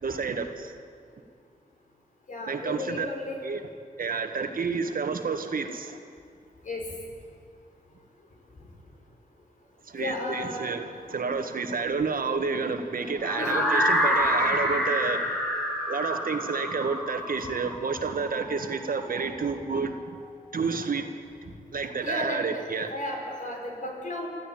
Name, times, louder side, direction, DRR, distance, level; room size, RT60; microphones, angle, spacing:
voice 1, 0.0-0.7 2.5-3.1 3.4-3.6 4.0-6.0 9.8-15.4 15.9-20.2 20.5-21.1 21.7-22.9, right 4 dB, 70° right, 7 dB, 1.7 m, -30 dB
voice 2, 2.3-3.4 6.6-6.8 10.0-10.7 11.1-11.2 13.4-13.7 22.0-24.3, left 2 dB, 60° left, 0 dB, 5.3 m, -34 dB
sound 1, 13.2-19.2, equal, 5° left, 6.9 m, -27 dB
24.5 x 14.0 x 9.1 m, 2.2 s
cardioid pair, 75°, 15 cm